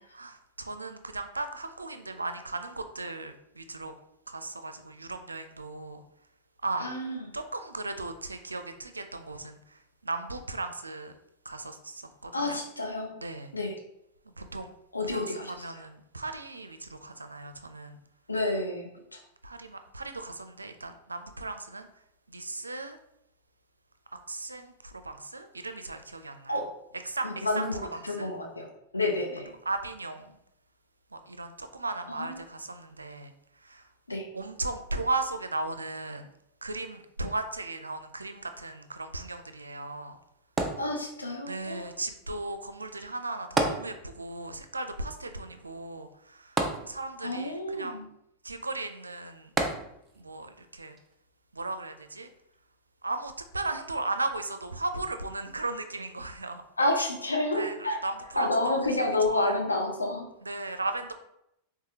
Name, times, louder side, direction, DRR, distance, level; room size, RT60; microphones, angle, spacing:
voice 1, 0.0-3.9 4.3-6.0 6.6-6.9 7.3-11.1 11.4-12.6 13.2-13.5 14.4-14.7 15.1-18.0 19.4-21.9 22.3-23.0 24.3-26.6 26.9-27.6 27.9-28.3 29.0-29.1 29.7-30.4 31.1-33.3 33.6-33.9 34.3-36.3 36.6-40.2 41.5-46.6 46.8-48.0 48.4-49.5 50.2-51.0 51.5-52.3 53.0-56.6 57.5-59.6 60.4-61.1, right 2 dB, 80° right, 8 dB, 0.4 m, -36 dB
voice 2, 6.8-7.3 12.3-13.1 13.5-13.8 14.9-15.8 18.3-19.2 26.5-26.7 27.2-28.7 28.9-29.5 32.1-32.4 34.1-34.3 40.8-41.9 47.2-48.1 56.8-58.0 58.4-60.3, left 2 dB, 80° left, 1 dB, 0.8 m, -29 dB
sound 1, 40.6-41.5 43.6-44.4 44.7-44.8 46.6-47.4 49.6-50.3 51.0-51.1, right 2 dB, 15° right, 0.6 m, -30 dB
4.7 x 3.5 x 2.8 m, 0.81 s
figure-of-eight pair, 90°, 0 cm